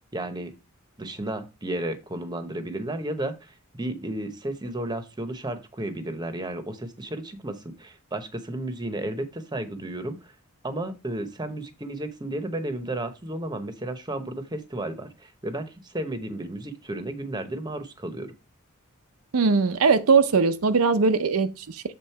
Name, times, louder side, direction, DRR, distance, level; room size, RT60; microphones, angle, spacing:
voice 1, 0.1-0.5 1.0-10.3 10.6-18.3, right 1 dB, 20° right, 0.9 m, -33 dB
voice 2, 19.3-21.8, right 4 dB, 85° right, 0.6 m, -20 dB
7.4 x 3.8 x 4.5 m
head